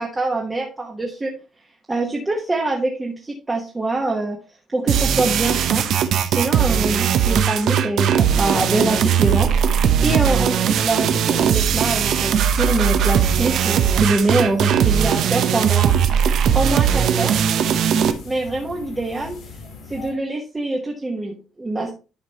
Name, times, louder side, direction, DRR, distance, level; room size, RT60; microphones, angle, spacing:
voice 1, 0.0-1.4 1.9-4.4 4.7-5.8 6.2-16.1 16.5-17.4 18.2-19.4 19.9-21.9, right 2 dB, 15° right, -1 dB, 1.1 m, -24 dB
sound 1, 4.9-18.1, right 8 dB, 65° right, 0.7 m, -19 dB
sound 2, 8.1-20.1, left 5 dB, 85° left, 3.4 m, -38 dB
11.5 x 5.0 x 2.9 m, 0.32 s
cardioid pair, 155°, 0 cm